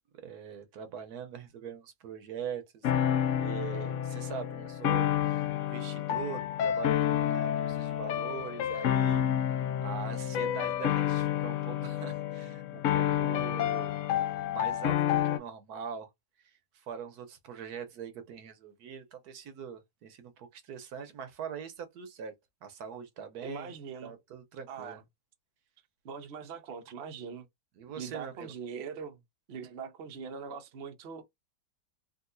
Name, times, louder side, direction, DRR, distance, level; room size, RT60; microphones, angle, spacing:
voice 1, 0.2-2.9 3.4-9.3 9.8-14.0 14.5-16.1 16.4-22.3 22.6-23.7 24.0-25.0 27.8-28.5, right 7 dB, 70° right, 1.2 m, -42 dB
sound 1, 2.8-15.4, left 10 dB, 75° left, 0.7 m, -29 dB
voice 2, 23.4-24.1 24.7-25.0 26.0-27.5 28.0-29.2 29.5-31.2, right 6 dB, 55° right, 0.8 m, -42 dB
3.7 x 2.5 x 2.5 m
omnidirectional pair, 1.8 m